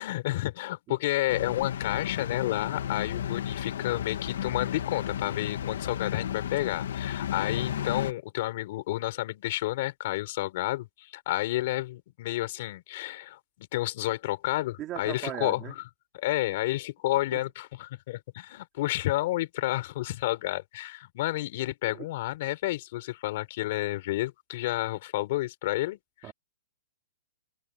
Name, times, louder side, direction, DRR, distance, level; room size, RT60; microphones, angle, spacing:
voice 1, 0.0-15.8 16.1-26.3, left 17 dB, 40° left, 4.4 m, -30 dB
sound 1, 1.3-8.1, left 9 dB, 60° left, 1.2 m, -33 dB
voice 2, 14.8-15.7 17.3-17.4 21.8-22.1 26.2-26.3, right 13 dB, 20° right, 2.4 m, -37 dB
hypercardioid pair, 170°, 0 cm